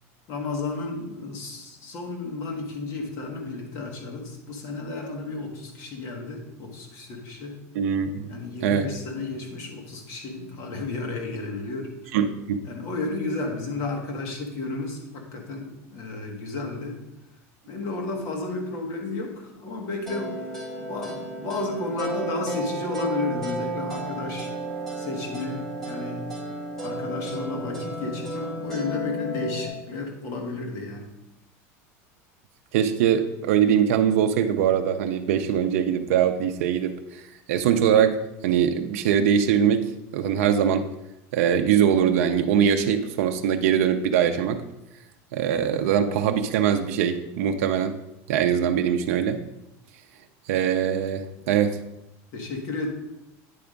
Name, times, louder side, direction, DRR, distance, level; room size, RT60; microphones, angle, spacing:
voice 1, 0.3-7.6 8.3-12.2 12.6-17.0 17.7-24.5 25.0-26.3 26.8-31.1 52.3-52.9, left 3 dB, 40° left, 1 dB, 1.4 m, -32 dB
voice 2, 7.7-8.3 8.6-8.9 12.1-12.6 32.7-37.2 37.5-38.2 38.4-39.8 40.1-40.9 41.3-44.6 45.3-47.9 48.3-49.4 50.5-51.8, right 8 dB, 75° right, 6 dB, 0.5 m, -22 dB
sound 1, 20.1-29.7, right 1 dB, 5° left, 1.7 m, -33 dB
9.4 x 3.5 x 5.1 m, 0.91 s
supercardioid pair, 180°, 8 cm